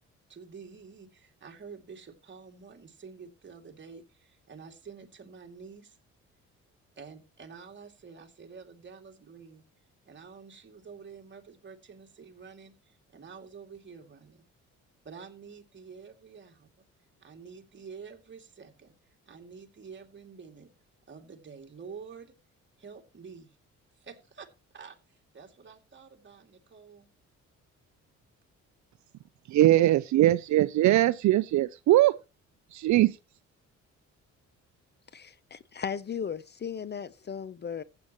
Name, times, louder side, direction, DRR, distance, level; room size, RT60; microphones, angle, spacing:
voice 1, 0.3-6.0 7.0-9.6 10.0-14.4 15.0-16.7 17.2-18.9 19.3-20.7 21.1-22.3 22.8-23.6 23.9-27.1, right 5 dB, 40° right, 2.5 m, -48 dB
voice 2, 29.5-32.1 32.7-33.2, right 15 dB, 70° right, 0.5 m, -21 dB
voice 3, 35.1-37.8, left 7 dB, 35° left, 0.7 m, -36 dB
15.0 x 8.7 x 3.0 m
cardioid pair, 90°, 30 cm